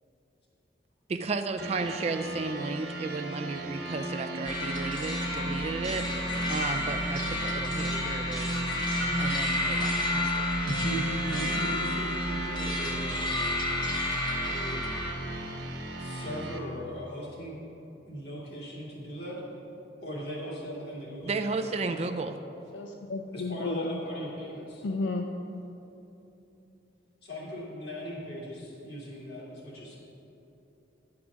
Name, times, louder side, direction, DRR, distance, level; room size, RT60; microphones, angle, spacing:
voice 1, 1.1-6.1 6.5-8.6 9.2-10.5 21.2-22.4, right 3 dB, 35° right, 7 dB, 0.3 m, -33 dB
sound 1, 1.6-16.6, right 1 dB, 70° right, 1.2 m, -35 dB
sound 2, 4.4-15.1, left 1 dB, 25° left, 0.9 m, -31 dB
voice 2, 10.6-13.3 14.4-14.8 16.0-17.6 18.0-19.4 20.0-22.0 23.3-24.9 27.2-30.0, equal, 60° left, -6 dB, 2.4 m, -38 dB
voice 3, 22.7-24.0 24.8-25.3, left 3 dB, 80° left, 4 dB, 0.4 m, -32 dB
10.5 x 4.8 x 6.2 m, 2.9 s
head